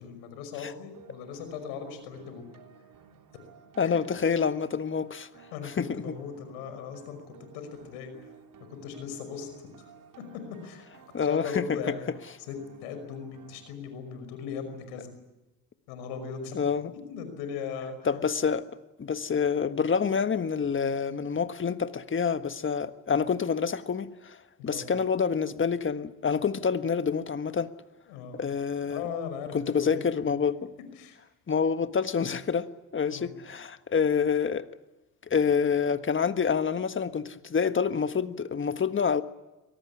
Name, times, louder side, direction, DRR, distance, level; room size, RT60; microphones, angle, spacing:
voice 1, 0.0-2.6 3.8-4.0 5.5-8.1 8.7-9.7 10.2-10.9 11.2-12.1 12.5-15.1 15.9-16.7 17.1-18.2 24.6-24.8 28.1-28.4 28.9-30.0 31.0-31.2 33.1-33.3, left 6 dB, 85° left, 5.6 m, -38 dB
sound 1, 0.9-13.7, right 7 dB, 55° right, 3.5 m, -55 dB
voice 2, 3.8-5.3 5.8-5.9 11.1-11.9 16.5-16.9 18.0-18.7 19.0-24.4 24.6-27.7 28.3-29.1 29.5-30.7 31.5-34.6 35.3-39.2, left 6 dB, 30° left, 1.5 m, -27 dB
24.5 x 18.5 x 9.8 m
supercardioid pair, 80°, 39 cm